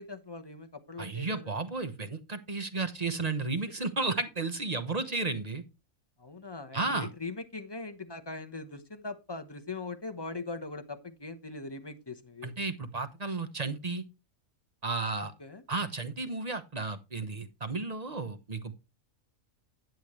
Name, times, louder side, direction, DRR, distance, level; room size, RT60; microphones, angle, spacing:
voice 1, 0.0-1.7 6.2-12.5 15.2-15.6, left 3 dB, 20° left, 7 dB, 0.8 m, -41 dB
voice 2, 1.0-5.6 6.7-7.1 12.4-14.0 14.8-15.3 15.7-18.7, right 3 dB, 30° right, 9 dB, 1.0 m, -33 dB
10.0 x 9.1 x 3.1 m, 0.26 s
omnidirectional pair, 1.5 m